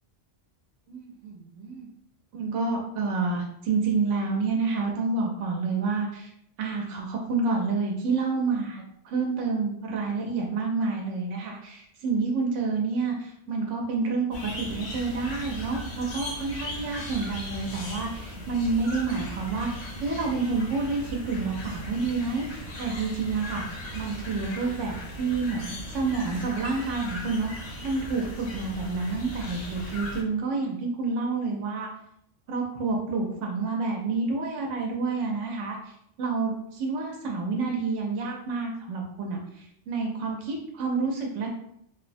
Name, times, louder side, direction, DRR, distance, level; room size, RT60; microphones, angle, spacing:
voice 1, 0.9-1.9 2.3-6.3 6.6-31.9 32.5-41.5, right 4 dB, 85° right, 0 dB, 0.9 m, -29 dB
sound 1, 14.3-30.2, equal, 65° left, 0.9 m, -38 dB
2.9 x 2.0 x 2.5 m, 0.74 s
omnidirectional pair, 1.2 m